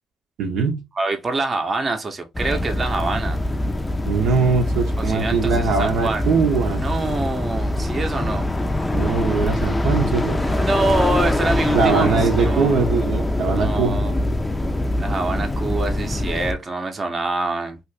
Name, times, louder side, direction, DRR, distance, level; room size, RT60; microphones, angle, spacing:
voice 1, 0.4-0.8 4.1-6.8 8.9-10.4 11.7-14.0, right 5 dB, 85° right, 0.8 m, -21 dB
voice 2, 1.0-3.4 5.0-6.4 6.8-8.5 10.4-12.1 12.4-12.9 13.5-14.2 15.0-17.8, right 2 dB, 35° right, 0.7 m, -25 dB
sound 1, 2.3-16.5, left 1 dB, 15° left, 0.4 m, -23 dB
2.7 x 2.5 x 3.2 m
cardioid pair, 90°, 0 cm